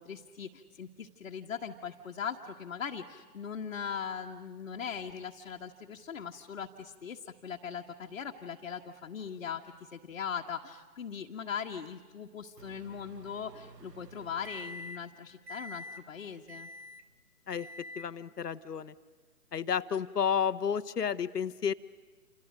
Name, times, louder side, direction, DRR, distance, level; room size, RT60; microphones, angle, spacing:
voice 1, 0.0-16.7, left 7 dB, 50° left, -1 dB, 1.4 m, -40 dB
Microwave oven, 12.6-15.1 15.5-16.0 16.5-17.1 17.5-18.1, left 1 dB, 85° right, 1.8 m, -47 dB
voice 2, 17.5-18.9 19.5-21.7, left 7 dB, 75° left, 13 dB, 1.0 m, -31 dB
28.5 x 27.5 x 6.4 m, 1.4 s
figure-of-eight pair, 140°, 47 cm